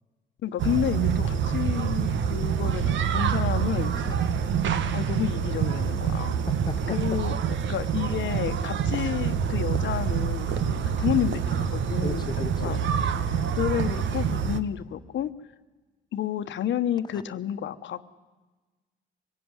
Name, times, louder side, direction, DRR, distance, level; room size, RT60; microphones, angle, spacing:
voice 1, 0.4-3.9 4.9-6.4 6.9-7.3 7.7-12.3 12.6-12.8 13.3-15.3 16.1-18.0, left 10 dB, 70° left, 10 dB, 1.1 m, -30 dB
sound 1, 0.6-14.6, right 7 dB, 70° right, 1.3 m, -26 dB
voice 2, 6.5-7.2 10.8-11.0 12.0-13.3 17.1-17.2, left 4 dB, 20° left, 7 dB, 1.1 m, -37 dB
24.0 x 16.5 x 9.7 m, 1.3 s
cardioid pair, 90°, 20 cm